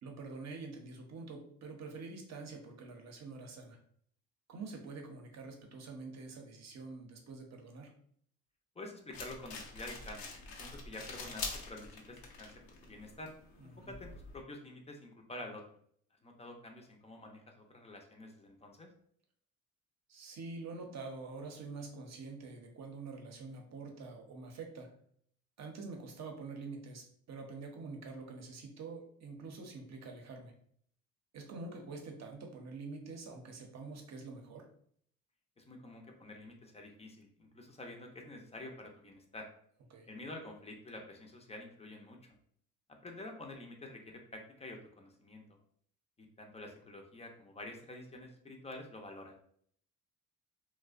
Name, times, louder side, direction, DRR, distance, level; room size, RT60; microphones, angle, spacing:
voice 1, 0.0-3.8 4.5-7.9 13.6-13.9 20.1-24.9 25.6-30.5 31.3-34.7 39.9-40.1, right 3 dB, 50° right, 3 dB, 0.7 m, -46 dB
voice 2, 8.8-12.5 12.8-13.3 13.8-15.6 16.2-18.9 35.6-39.5 40.1-42.2 43.0-45.6 46.2-49.4, left 2 dB, 20° left, 2 dB, 0.5 m, -48 dB
sound 1, 9.1-14.4, left 4 dB, 80° left, 0.7 m, -46 dB
2.5 x 2.1 x 2.3 m, 0.63 s
supercardioid pair, 80°, 35 cm